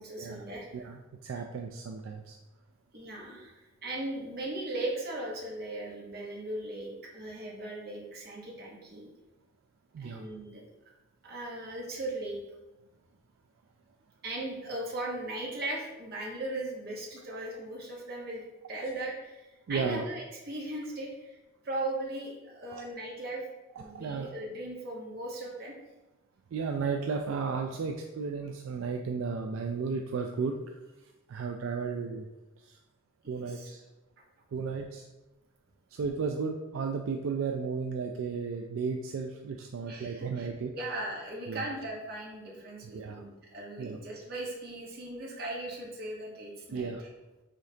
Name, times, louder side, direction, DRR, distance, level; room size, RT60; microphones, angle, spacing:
voice 1, 0.0-0.9 2.9-9.1 10.0-10.6 11.2-12.4 14.2-23.4 23.8-25.7 33.2-33.7 39.8-47.1, right 1 dB, 50° right, -3 dB, 1.1 m, -38 dB
voice 2, 0.7-2.4 9.9-10.2 19.7-20.0 22.7-22.8 23.8-24.3 26.5-30.6 31.3-32.3 32.6-32.8 33.3-33.8 34.5-35.0 35.9-40.7 41.5-41.6 42.8-43.2 43.8-44.0 46.7-47.0, right 5 dB, 75° right, 3 dB, 0.3 m, -34 dB
5.1 x 3.6 x 2.8 m, 1.1 s
head